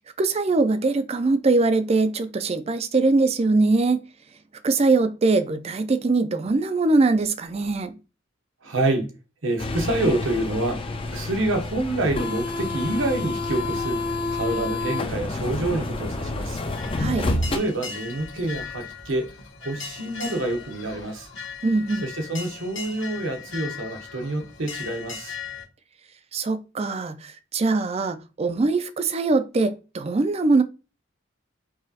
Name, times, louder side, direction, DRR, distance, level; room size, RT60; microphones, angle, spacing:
voice 1, 0.2-4.0 4.6-7.9 17.0-17.3 21.6-22.1 26.3-30.6, right 3 dB, 30° right, 0.4 m, -22 dB
voice 2, 8.6-9.1 9.4-16.6 17.3-19.3 19.6-21.3 22.0-25.4, right 2 dB, 75° right, 1.0 m, -27 dB
sound 1, 9.6-17.6, left 2 dB, 25° left, 0.5 m, -28 dB
sound 2, 16.7-25.6, left 5 dB, 65° left, 1.2 m, -38 dB
4.7 x 3.0 x 2.8 m
head